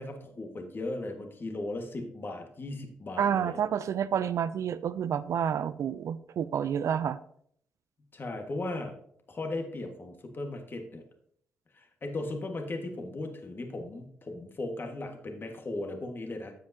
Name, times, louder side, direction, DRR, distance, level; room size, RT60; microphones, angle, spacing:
voice 1, 0.0-3.6 8.1-8.9 9.3-11.0 11.7-16.5, left 2 dB, 40° left, 4 dB, 1.7 m, -37 dB
voice 2, 3.2-7.2, right 8 dB, 60° right, 16 dB, 0.4 m, -29 dB
14.0 x 5.0 x 2.8 m, 0.65 s
supercardioid pair, 65°, 6 cm